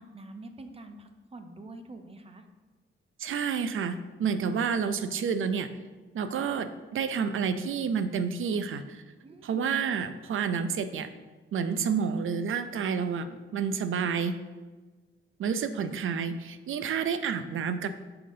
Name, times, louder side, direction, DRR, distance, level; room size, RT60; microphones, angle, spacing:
voice 1, 0.0-2.4 9.2-9.6, right 2 dB, 30° right, 6 dB, 0.6 m, -46 dB
voice 2, 3.2-5.7 6.1-9.0 9.4-11.1 11.5-14.4 15.4-17.9, right 6 dB, 75° right, 11 dB, 0.5 m, -29 dB
5.8 x 3.7 x 5.3 m, 1.3 s
wide cardioid pair, 125°, 21 cm